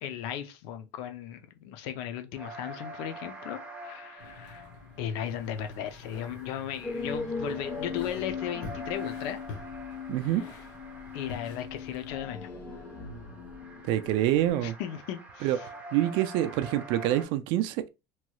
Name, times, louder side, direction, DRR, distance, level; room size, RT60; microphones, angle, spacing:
voice 1, 0.0-4.7 5.0-9.4 10.2-10.4 11.1-12.5 14.6-15.6, left 10 dB, 70° left, 0.5 m, -36 dB
sound 1, 2.3-12.4 12.7-17.2, right 2 dB, 15° right, 0.7 m, -47 dB
sound 2, 4.2-12.1, left 4 dB, 55° left, 0.9 m, -47 dB
sound 3, 6.8-14.5, left 5 dB, 20° left, 0.8 m, -39 dB
voice 2, 10.1-10.4 13.8-14.7 15.4-15.6 15.9-17.9, right 13 dB, 65° right, 0.3 m, -26 dB
3.0 x 3.0 x 2.2 m
cardioid pair, 170°, 9 cm